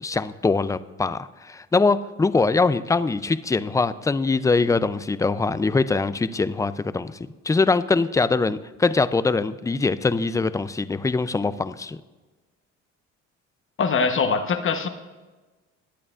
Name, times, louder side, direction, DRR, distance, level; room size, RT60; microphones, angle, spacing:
voice 1, 0.0-7.2 7.5-12.0, left 3 dB, 10° left, 14 dB, 0.4 m, -22 dB
voice 2, 13.8-14.9, left 5 dB, 40° left, 8 dB, 1.0 m, -22 dB
19.5 x 8.6 x 2.5 m, 1.2 s
supercardioid pair, 75°, 30 cm